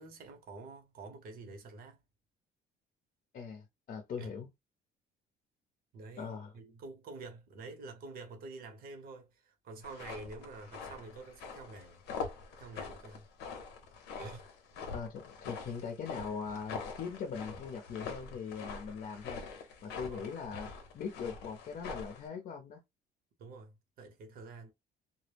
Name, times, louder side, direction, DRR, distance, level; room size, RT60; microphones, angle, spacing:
voice 1, 0.0-2.0 4.2-4.3 5.9-12.0 12.6-13.3 14.2-14.5 20.1-20.3 23.4-24.7, right 3 dB, 60° right, 0.9 m, -48 dB
voice 2, 3.3-4.5 6.2-6.5 14.9-22.8, left 6 dB, 50° left, 0.6 m, -41 dB
sound 1, 9.8-22.3, left 5 dB, 85° left, 0.7 m, -44 dB
2.1 x 2.0 x 3.3 m
cardioid pair, 110°, 17 cm